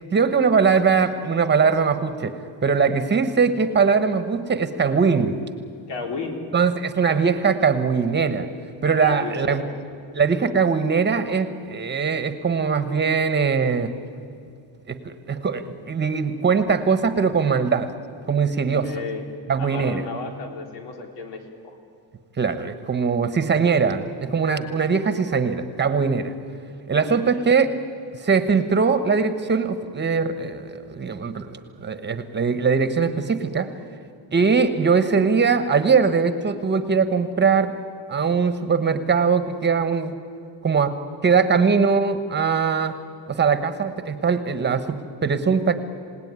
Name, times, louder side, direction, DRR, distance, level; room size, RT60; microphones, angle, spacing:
voice 1, 0.1-2.3 2.6-5.4 6.5-8.5 8.8-9.6 10.1-13.9 14.9-17.9 18.3-18.9 19.5-20.0 22.4-26.3 26.9-27.7 28.2-33.7 34.3-37.7 38.1-40.1 40.6-40.9 41.2-43.0 43.3-45.7, right 5 dB, 25° right, 11 dB, 1.2 m, -21 dB
voice 2, 5.9-6.5 9.0-9.8 18.8-19.2 19.6-21.8 27.0-27.4, left 3 dB, 75° left, 4 dB, 3.6 m, -34 dB
27.5 x 18.0 x 9.7 m, 2.4 s
cardioid pair, 150°, 42 cm